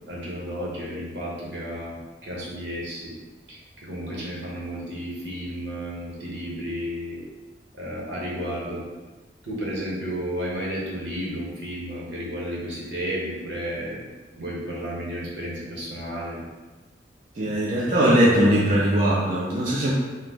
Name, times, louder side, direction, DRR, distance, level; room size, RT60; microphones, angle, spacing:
voice 1, 0.1-3.1 3.5-7.2 7.8-8.8 9.4-14.1 14.4-16.4, equal, 75° right, -5 dB, 0.9 m, -32 dB
voice 2, 17.3-19.9, right 1 dB, 40° right, -6 dB, 0.4 m, -20 dB
2.8 x 2.1 x 3.6 m, 1.2 s
head